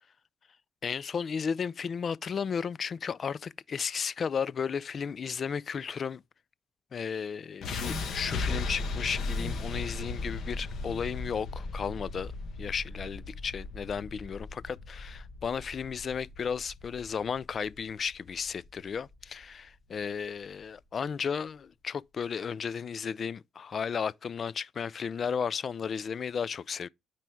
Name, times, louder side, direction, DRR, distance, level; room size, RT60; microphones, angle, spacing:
voice 1, 0.8-6.2 6.9-12.3 12.6-26.9, left 6 dB, 50° left, 0.3 m, -34 dB
sound 1, 7.6-19.7, left 3 dB, 65° left, 1.6 m, -37 dB
9.1 x 4.6 x 3.5 m
cardioid pair, 90°, 0 cm